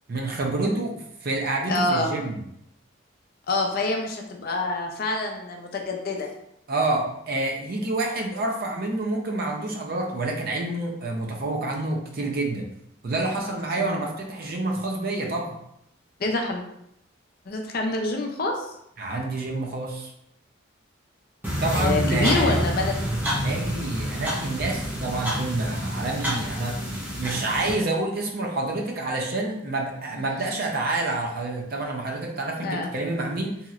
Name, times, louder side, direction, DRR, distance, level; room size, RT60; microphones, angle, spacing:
voice 1, 0.1-2.4 6.7-12.7 13.0-15.6 19.0-20.1 21.6-22.6 23.4-33.6, right 2 dB, 50° right, 1 dB, 0.5 m, -28 dB
voice 2, 1.7-2.2 3.5-6.3 13.4-13.5 13.8-14.0 16.2-16.6 17.5-18.7 21.8-23.1 30.1-30.7 32.6-32.9, left 2 dB, 50° left, 2 dB, 0.4 m, -27 dB
sound 1, 21.4-27.7, equal, 10° right, 0.8 m, -28 dB
3.0 x 2.8 x 2.4 m, 0.76 s
head